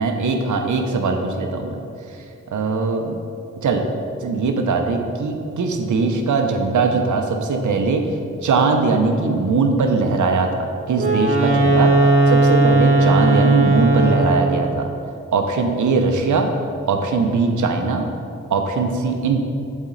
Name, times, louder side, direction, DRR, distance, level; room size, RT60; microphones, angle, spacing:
voice 1, 0.0-1.8 2.5-3.2 3.6-3.8 4.2-8.0 8.4-11.9 12.3-14.9 15.3-16.5 16.9-18.1 18.5-19.4, right 4 dB, 70° right, 4 dB, 0.7 m, -20 dB
Wind instrument woodwind instrument, 10.9-14.6, right 2 dB, 45° right, 1.1 m, -16 dB
7.3 x 4.1 x 3.8 m, 2.6 s
cardioid pair, 40°, 31 cm